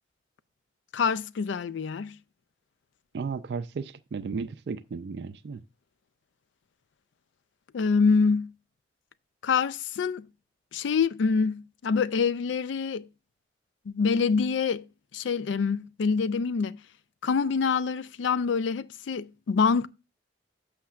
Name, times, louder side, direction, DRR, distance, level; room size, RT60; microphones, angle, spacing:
voice 1, 0.9-2.2 7.7-8.5 9.4-10.3 10.7-13.1 13.9-14.9 15.1-16.8 17.2-19.9, left 5 dB, 80° left, 0.4 m, -26 dB
voice 2, 3.1-5.6, right 5 dB, 65° right, 0.3 m, -34 dB
11.5 x 6.4 x 2.4 m
head